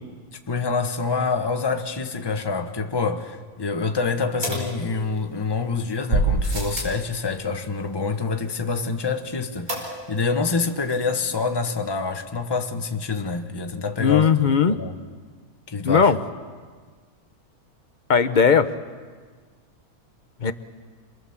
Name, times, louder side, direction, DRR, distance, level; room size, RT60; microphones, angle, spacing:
voice 1, 0.5-14.3 14.7-15.0 15.7-16.1, left 4 dB, 15° left, 5 dB, 1.3 m, -26 dB
sound 1, 4.4-5.4 6.1-7.0 9.7-10.3 10.6-10.7 10.9-11.0, right 2 dB, 65° right, 5.8 m, -26 dB
voice 2, 14.0-14.8 15.8-16.2 18.1-18.7 20.4-20.5, left 6 dB, 35° left, 11 dB, 1.0 m, -17 dB
27.0 x 21.5 x 7.3 m, 1.5 s
omnidirectional pair, 1.6 m